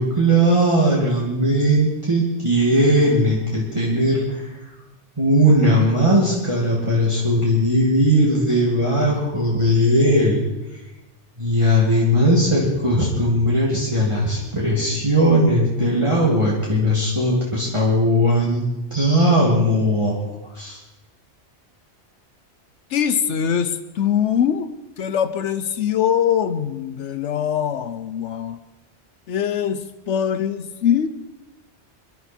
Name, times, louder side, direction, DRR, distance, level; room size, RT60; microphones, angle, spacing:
voice 1, 0.0-4.5 5.2-10.4 11.4-18.7 18.9-20.2 20.5-20.8, equal, 25° right, -5 dB, 2.5 m, -18 dB
voice 2, 22.9-24.7 25.0-28.6 29.3-31.1, left 8 dB, 80° left, 10 dB, 1.1 m, -22 dB
23.5 x 11.5 x 4.4 m, 1.0 s
omnidirectional pair, 1.2 m